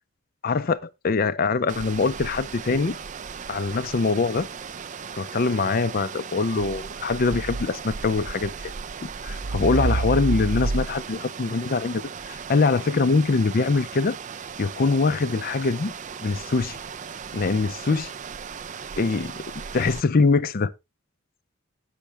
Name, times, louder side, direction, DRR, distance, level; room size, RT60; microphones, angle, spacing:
voice 1, 0.4-3.0 3.5-4.5 5.2-8.5 9.0-9.1 9.5-14.2 14.6-15.9 16.2-16.8 17.3-18.1 19.0-19.3 19.7-20.7, left 4 dB, 45° left, 0.5 m, -23 dB
sound 1, 1.7-20.0, right 4 dB, 35° right, 0.5 m, -34 dB
10.0 x 7.4 x 3.3 m
head